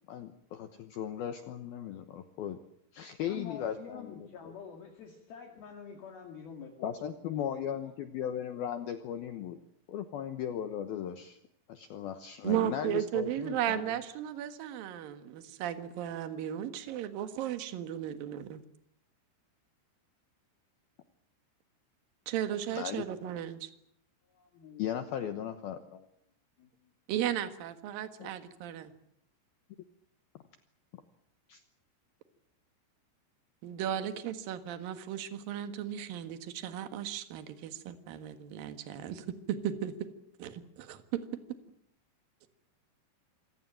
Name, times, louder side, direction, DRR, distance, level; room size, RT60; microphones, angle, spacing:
voice 1, 0.1-2.6 2.9-4.2 6.8-9.6 9.9-11.4 11.7-13.8 22.7-23.0 24.8-26.1 28.2-28.3 30.9-31.0 31.5-31.6, left 9 dB, 80° left, 9 dB, 2.2 m, -37 dB
voice 2, 3.3-7.0 7.5-7.9 24.3-24.8 25.1-25.2 26.6-26.7, left 6 dB, 55° left, 3 dB, 3.6 m, -47 dB
voice 3, 12.4-18.6 22.3-23.7 27.1-28.9 33.6-40.1 40.4-41.2, right 11 dB, 60° right, 9 dB, 2.7 m, -35 dB
26.5 x 17.0 x 9.0 m, 0.74 s
omnidirectional pair, 5.9 m